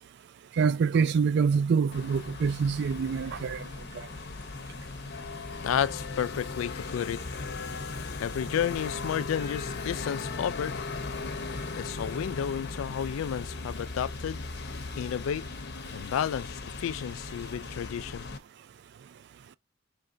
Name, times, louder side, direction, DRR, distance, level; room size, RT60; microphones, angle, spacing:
voice 1, 0.6-3.6 4.0-4.1, right 5 dB, 55° right, 0.3 m, -25 dB
sound 1, 1.9-18.4, left 3 dB, 55° left, 0.7 m, -38 dB
voice 2, 5.6-7.2 8.2-10.8 11.8-14.4 15.0-15.4 15.9-18.3, left 8 dB, 80° left, 0.3 m, -31 dB
4.9 x 3.2 x 2.6 m
head